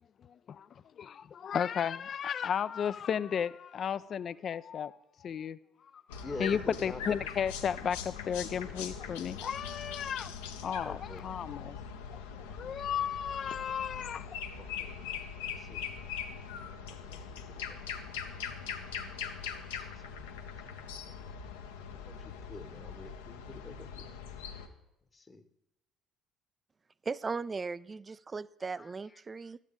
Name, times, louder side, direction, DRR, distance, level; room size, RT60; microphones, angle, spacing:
voice 1, 0.2-0.7 1.0-5.6 6.2-10.3 10.6-11.9 12.1-12.2 12.5-14.4, left 8 dB, 50° left, 16 dB, 0.3 m, -34 dB
sound 1, 6.1-24.7, left 7 dB, 80° left, 0.7 m, -42 dB
voice 2, 6.2-7.3 10.8-11.2 14.6-14.9 15.5-15.9 16.9-18.3 19.8-19.9 20.6-20.8 22.0-24.1 25.1-25.4 28.8-28.9, left 3 dB, 25° left, 9 dB, 0.9 m, -45 dB
voice 3, 27.0-29.6, right 4 dB, 30° right, 20 dB, 0.3 m, -37 dB
12.5 x 9.0 x 3.7 m, 0.89 s
hypercardioid pair, 55°, 0 cm